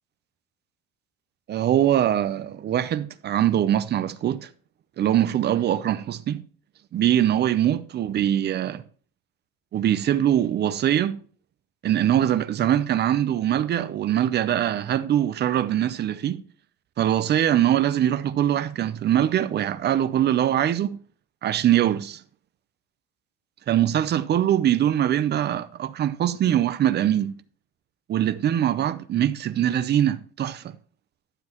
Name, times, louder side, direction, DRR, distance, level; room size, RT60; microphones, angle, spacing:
voice 1, 1.5-4.5 5.0-6.4 6.9-8.8 9.7-11.2 11.8-16.4 17.0-21.0 21.4-22.2 23.7-27.3 28.1-30.6, right 11 dB, 35° right, 0.6 m, -22 dB
12.0 x 7.6 x 3.0 m
cardioid pair, 155°, 30 cm